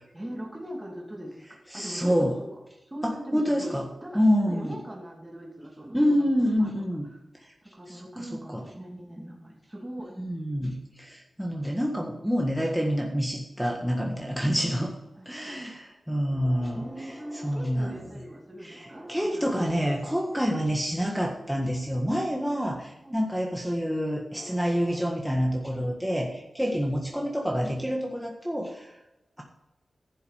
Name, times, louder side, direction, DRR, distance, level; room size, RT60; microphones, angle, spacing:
voice 1, 0.1-2.5 2.8-4.2 4.5-6.7 7.6-10.2 15.2-15.7 16.7-20.1 23.0-23.3, right 1 dB, 15° right, -2 dB, 2.6 m, -41 dB
voice 2, 1.7-2.3 3.0-3.9 4.1-4.8 5.9-7.1 7.9-8.0 8.5-8.6 10.2-14.9 15.2-18.2 18.6-28.9, equal, ahead, -1 dB, 1.6 m, -27 dB
11.0 x 7.0 x 5.1 m, 0.95 s
cardioid pair, 65°, 0 cm